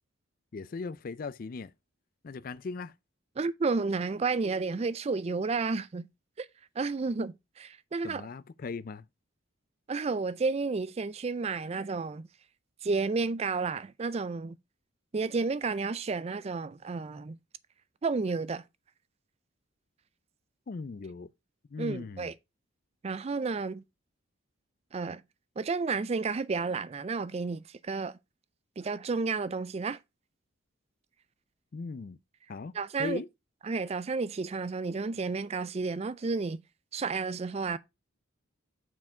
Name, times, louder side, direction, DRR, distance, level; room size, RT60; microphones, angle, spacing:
voice 1, 0.5-1.7 2.2-2.9 8.0-9.0 20.7-21.3 21.7-22.3 31.7-32.2 32.5-32.7 33.0-33.3, left 4 dB, 45° left, 0.4 m, -38 dB
voice 2, 3.4-6.1 6.4-6.5 6.8-8.3 9.9-12.3 12.8-14.6 15.1-17.4 18.0-18.6 21.8-22.3 23.0-23.8 24.9-25.2 25.6-28.2 28.8-30.0 32.7-33.2 33.7-36.6 36.9-37.8, right 4 dB, 30° right, 0.3 m, -31 dB
6.0 x 4.7 x 4.3 m
head